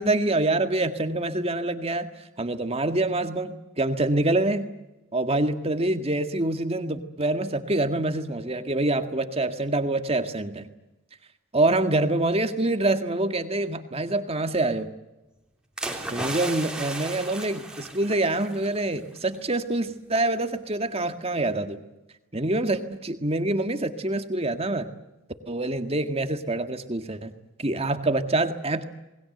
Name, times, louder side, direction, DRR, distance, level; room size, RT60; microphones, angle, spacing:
voice 1, 0.0-2.1 2.4-4.7 5.1-10.7 11.5-14.9 16.1-21.8 22.3-24.9 25.5-27.3 27.6-28.8, right 2 dB, 30° right, 8 dB, 1.8 m, -26 dB
sound 1, 15.8-18.8 19.1-19.4, right 2 dB, 5° right, 3.2 m, -34 dB
28.0 x 20.5 x 7.9 m, 1.0 s
head